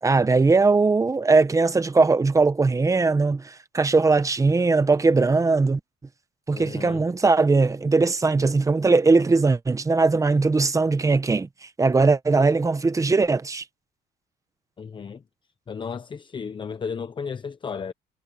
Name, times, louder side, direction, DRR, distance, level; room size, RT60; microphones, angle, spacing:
voice 1, 0.0-5.8 6.5-11.5 11.8-13.6, right 3 dB, 20° right, 1.1 m, -20 dB
voice 2, 6.5-7.0 14.8-15.2 15.7-17.9, left 6 dB, 30° left, 0.8 m, -34 dB
cardioid pair, 110°, 17 cm